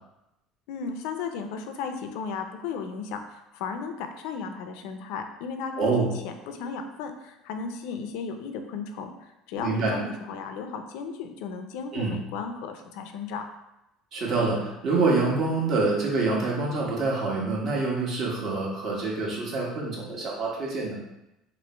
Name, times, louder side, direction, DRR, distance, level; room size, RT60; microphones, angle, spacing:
voice 1, 0.7-13.4, left 5 dB, 80° left, 6 dB, 0.5 m, -35 dB
voice 2, 5.8-6.1 9.6-10.0 11.9-12.1 14.1-21.0, right 3 dB, 45° right, -3 dB, 1.2 m, -26 dB
3.0 x 3.0 x 4.3 m, 0.91 s
cardioid pair, 130°, 0 cm